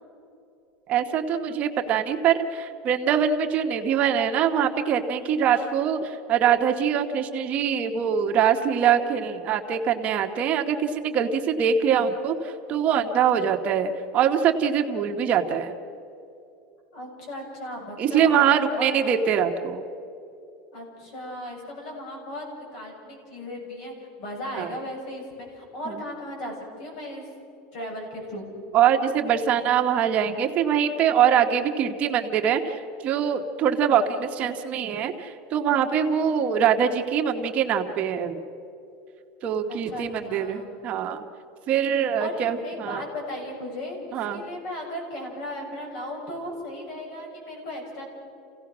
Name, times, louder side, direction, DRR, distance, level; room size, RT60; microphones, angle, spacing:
voice 1, 0.9-15.7 18.0-19.8 24.6-24.7 25.9-26.0 28.7-38.4 39.4-41.2 41.7-43.0 44.1-44.4, right 8 dB, 30° right, 4 dB, 1.1 m, -23 dB
voice 2, 16.9-19.0 20.7-27.2 27.7-28.5 39.7-40.7 42.2-48.0, left 1 dB, 60° left, 0 dB, 7.2 m, -36 dB
29.0 x 16.5 x 6.1 m, 2.8 s
cardioid pair, 170°, 4 cm